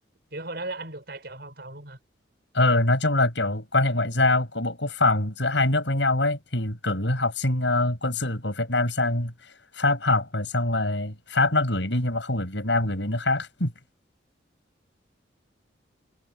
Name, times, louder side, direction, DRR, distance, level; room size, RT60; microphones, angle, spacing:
voice 1, 0.3-2.0, right 2 dB, 55° right, 6.9 m, -36 dB
voice 2, 2.5-9.3 9.7-13.7, left 2 dB, 70° left, 7.0 m, -24 dB
head